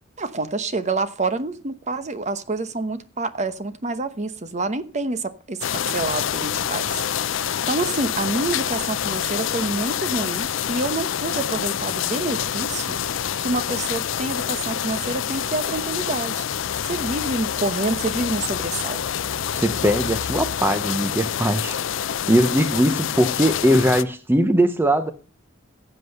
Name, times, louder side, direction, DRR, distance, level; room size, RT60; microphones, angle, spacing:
voice 1, 0.2-13.0 13.4-16.5 16.8-19.0, right 2 dB, 35° right, 0.9 m, -27 dB
sound 1, 5.6-24.0, left 9 dB, 65° left, 0.5 m, -27 dB
voice 2, 19.5-21.8 22.3-25.1, equal, 10° right, 0.7 m, -20 dB
15.0 x 8.0 x 5.3 m
head